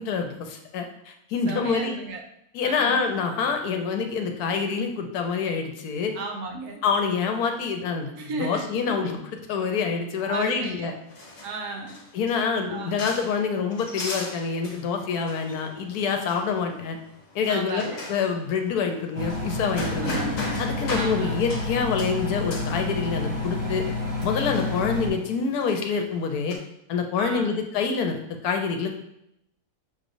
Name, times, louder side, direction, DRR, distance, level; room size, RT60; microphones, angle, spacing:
voice 1, 0.0-2.0 2.5-6.1 6.8-9.2 9.5-10.9 12.1-17.0 17.3-20.2 20.6-23.8 24.2-26.6 26.9-28.2 28.4-28.9, left 5 dB, 75° left, 4 dB, 1.1 m, -26 dB
voice 2, 1.5-2.2 2.6-3.1 6.1-6.8 8.2-9.0 10.2-10.9 11.4-12.0 12.7-12.9 17.5-18.0 19.8-20.4 20.9-21.4 27.2-27.6, right 4 dB, 75° right, 2 dB, 1.2 m, -34 dB
sound 1, 10.6-26.6, left 2 dB, 55° left, 1.1 m, -39 dB
Engine, 19.1-25.1, left 2 dB, 35° right, 0.7 m, -29 dB
6.1 x 3.1 x 2.6 m, 0.78 s
omnidirectional pair, 1.7 m